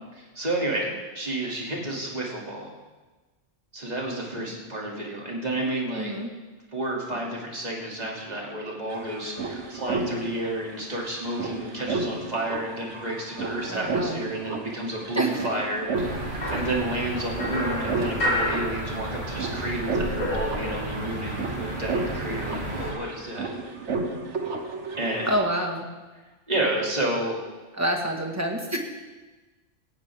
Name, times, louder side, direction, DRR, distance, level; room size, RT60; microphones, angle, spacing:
voice 1, 0.2-0.9 1.1-2.7 3.7-6.1 6.7-23.5 25.0-25.3 26.5-27.4, right 1 dB, 35° right, -3 dB, 3.0 m, -30 dB
voice 2, 6.0-6.3 13.6-14.2 15.1-15.4 25.3-25.8 27.8-28.8, equal, 15° right, 1 dB, 1.7 m, -27 dB
sound 1, 8.3-8.4 8.6-25.4, right 3 dB, 75° right, 1.6 m, -33 dB
sound 2, 15.9-22.9, right 2 dB, 60° right, 2.9 m, -34 dB
sound 3, 16.4-19.4 19.7-21.2, left 1 dB, 60° left, 3.4 m, -31 dB
18.0 x 15.0 x 3.6 m, 1.2 s
omnidirectional pair, 1.2 m